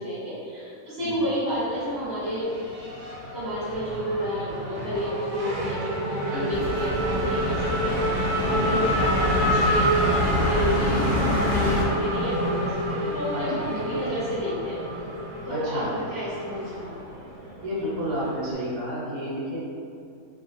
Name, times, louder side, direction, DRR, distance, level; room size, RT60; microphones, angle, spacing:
voice 1, 0.0-2.5 3.3-7.5 7.8-14.8 15.4-15.8 16.1-16.9, equal, 15° left, -14 dB, 1.0 m, -30 dB
Race car auto racing / Accelerating revving vroom, 1.6-18.5, equal, 60° right, 0.7 m, -29 dB
voice 2, 6.3-6.6 8.4-8.8 13.3-13.8 15.5-16.0 17.6-19.6, equal, 80° right, -9 dB, 1.4 m, -31 dB
sound 1, 6.5-11.9, left 2 dB, 80° left, 1.1 m, -28 dB
2.9 x 2.5 x 2.5 m, 2.4 s
omnidirectional pair, 1.6 m